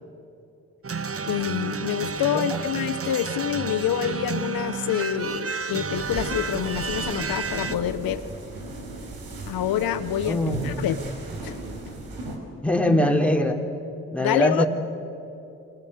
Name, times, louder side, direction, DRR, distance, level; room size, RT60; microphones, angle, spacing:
sound 1, 0.8-7.8, right 5 dB, 40° right, 1.3 m, -31 dB
voice 1, 1.2-8.2 9.5-11.0 11.4-11.6 14.2-14.6, left 10 dB, 75° left, 11 dB, 1.0 m, -27 dB
sound 2, 5.9-12.4, right 2 dB, 75° right, 4.6 m, -36 dB
voice 2, 10.3-10.6 12.6-13.6 14.1-14.7, left 1 dB, 5° left, 3 dB, 4.0 m, -21 dB
30.0 x 24.0 x 8.0 m, 2.8 s
hypercardioid pair, 45°, 36 cm